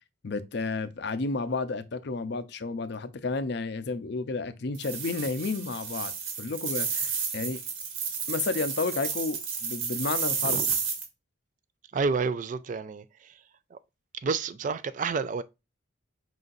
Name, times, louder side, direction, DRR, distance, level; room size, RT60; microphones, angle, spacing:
voice 1, 0.2-6.1 6.4-7.6 8.3-10.6, left 3 dB, 55° left, 0.5 m, -31 dB
sound 1, 4.7-11.1, right 6 dB, 80° right, 1.4 m, -32 dB
voice 2, 11.9-13.3 13.7-13.8 14.2-15.4, right 4 dB, 40° right, 0.3 m, -30 dB
4.9 x 3.9 x 2.5 m
head